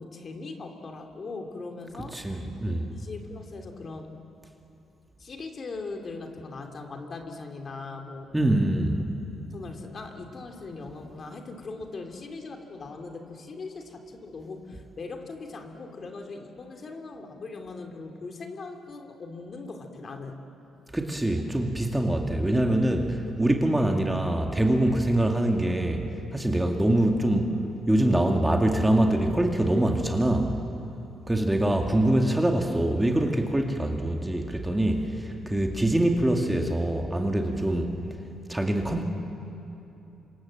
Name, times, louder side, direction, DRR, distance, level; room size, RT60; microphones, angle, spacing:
voice 1, 0.0-4.1 5.2-8.3 8.9-9.0 9.5-20.4 21.5-21.6 31.6-32.0, left 3 dB, 45° left, 4 dB, 2.9 m, -40 dB
voice 2, 2.1-2.8 8.3-9.0 20.9-26.0 26.3-27.5 27.9-30.6 31.3-37.9 38.5-39.0, right 1 dB, 10° right, 2 dB, 2.2 m, -24 dB
26.5 x 26.0 x 7.7 m, 2.9 s
cardioid pair, 90°, 0 cm